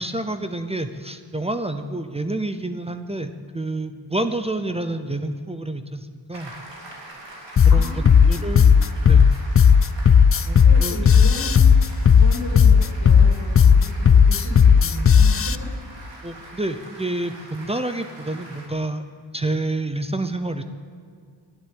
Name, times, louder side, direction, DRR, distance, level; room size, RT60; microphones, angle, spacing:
voice 1, 0.0-6.5 7.6-8.7 9.1-9.3 10.5-11.0 16.2-19.0 19.3-20.6, right 2 dB, 15° right, 9 dB, 0.7 m, -28 dB
Applause, 6.3-18.7, right 2 dB, 70° right, 3.4 m, -43 dB
sound 1, 7.6-15.6, left 6 dB, 35° left, 0.4 m, -13 dB
voice 2, 7.7-8.7 10.6-11.7 12.1-15.7, left 3 dB, 55° left, -1 dB, 2.9 m, -35 dB
11.5 x 11.0 x 9.1 m, 2.2 s
wide cardioid pair, 120°, 45 cm